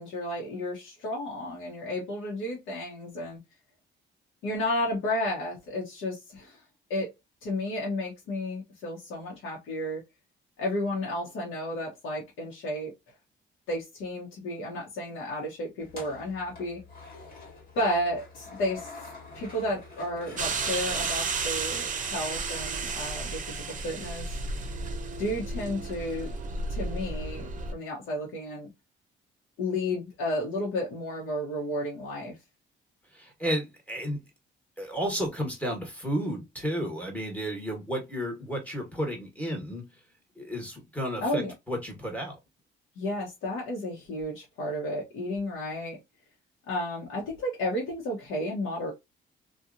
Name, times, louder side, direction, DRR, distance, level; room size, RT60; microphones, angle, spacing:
voice 1, 0.0-3.4 4.4-6.6 6.9-7.1 7.4-10.0 10.6-12.9 13.7-16.8 17.7-18.9 19.3-24.3 25.2-26.3 26.7-28.7 29.6-32.4 41.2-41.5 43.0-46.0 46.7-48.9, left 1 dB, 90° left, 1.0 m, -32 dB
sound 1, 15.8-21.8, left 3 dB, 45° left, 1.6 m, -46 dB
sound 2, 20.4-27.7, right 4 dB, 40° right, 0.6 m, -33 dB
voice 2, 33.1-34.2 34.8-39.9 40.4-41.4 41.7-42.4, equal, 5° left, 1.4 m, -32 dB
2.7 x 2.4 x 2.5 m
cardioid pair, 90°, 20 cm